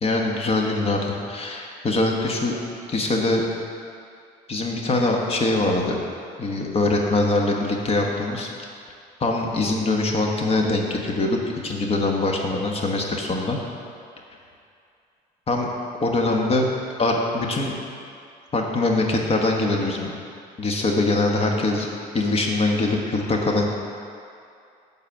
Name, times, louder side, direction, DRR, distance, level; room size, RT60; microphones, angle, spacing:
voice 1, 0.0-2.5 2.9-3.4 4.5-6.0 6.4-8.5 9.2-13.6 15.5-15.7 16.0-16.6 17.0-17.8 18.5-20.1 20.6-21.9 22.1-23.6, left 2 dB, 35° left, 0 dB, 1.3 m, -23 dB
9.0 x 4.2 x 7.3 m, 2.4 s
cardioid pair, 110°, 17 cm